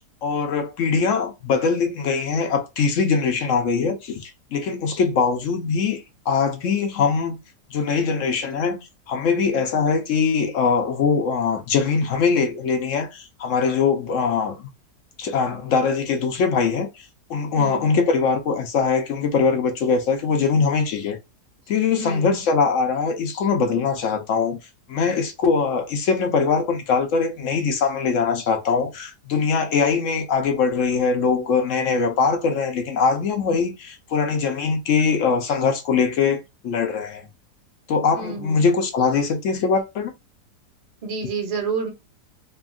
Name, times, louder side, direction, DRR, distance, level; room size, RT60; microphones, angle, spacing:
voice 1, 0.2-7.3 7.7-14.7 15.2-21.2 21.7-24.6 24.9-37.2 37.9-40.1, left 5 dB, 70° left, 0.7 m, -22 dB
voice 2, 17.5-17.9 22.0-22.4 38.1-38.7 41.0-41.9, right 4 dB, 30° right, 0.8 m, -29 dB
3.3 x 2.3 x 2.3 m
omnidirectional pair, 1.8 m